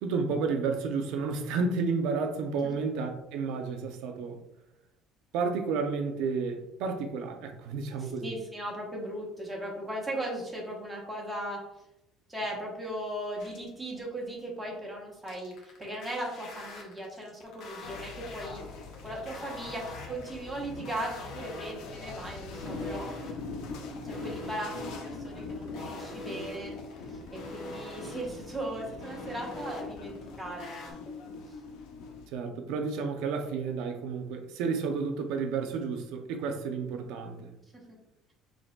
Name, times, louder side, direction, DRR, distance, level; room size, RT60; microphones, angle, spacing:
voice 1, 0.0-4.4 5.3-8.3 32.3-37.5, right 4 dB, 75° right, 5 dB, 0.5 m, -31 dB
voice 2, 8.0-11.6 12.3-18.6 19.0-23.1 24.0-26.7 27.1-30.9 31.5-31.6 37.9-38.0, right 1 dB, 5° right, -4 dB, 0.9 m, -38 dB
sound 1, 13.4-13.8 15.3-30.9, left 1 dB, 60° left, 1.1 m, -44 dB
sound 2, 17.8-32.3, left 3 dB, 80° left, 0.6 m, -42 dB
5.1 x 3.3 x 2.2 m, 0.86 s
cardioid pair, 165°, 0 cm